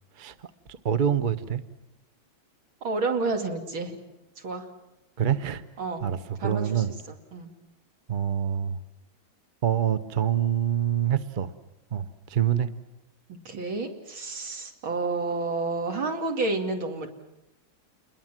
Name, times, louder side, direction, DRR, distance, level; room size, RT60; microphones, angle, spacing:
voice 1, 0.7-1.6 5.2-5.6 6.0-6.9 8.1-8.8 9.6-11.5 11.9-12.7, right 9 dB, 45° right, 13 dB, 0.6 m, -26 dB
voice 2, 2.8-4.0 4.4-4.7 5.8-6.0 6.4-7.5 13.3-17.1, right 3 dB, 75° right, 4 dB, 3.5 m, -30 dB
28.5 x 21.5 x 7.5 m, 0.90 s
omnidirectional pair, 2.3 m